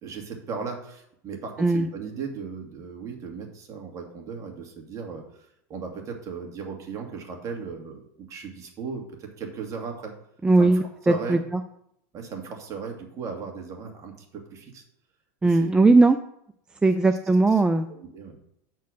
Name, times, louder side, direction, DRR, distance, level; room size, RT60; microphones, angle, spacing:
voice 1, 0.0-10.1 10.6-10.7 11.0-11.4 12.1-14.8 15.4-15.7 17.5-17.6 17.9-18.4, right 5 dB, 35° right, 2 dB, 2.1 m, -37 dB
voice 2, 10.4-11.4 15.4-16.2 16.8-17.9, right 3 dB, 10° right, 8 dB, 0.4 m, -19 dB
8.2 x 4.5 x 6.4 m, 0.74 s
supercardioid pair, 120°, 9 cm